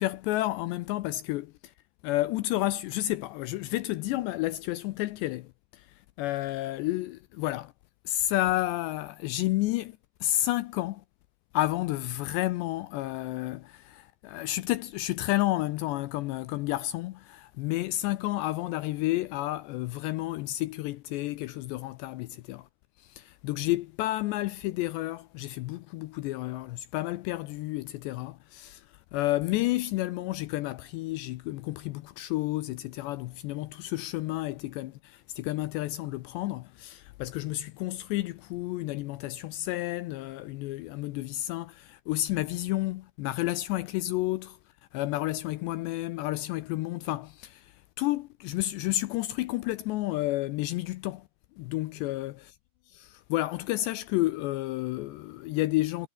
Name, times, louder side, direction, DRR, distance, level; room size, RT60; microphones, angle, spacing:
voice 1, 0.0-1.7 2.0-7.7 8.1-11.0 11.5-22.7 23.0-44.6 44.9-51.3 51.6-52.6 52.9-56.1, left 16 dB, 80° left, 2.6 m, -31 dB
omnidirectional pair, 5.6 m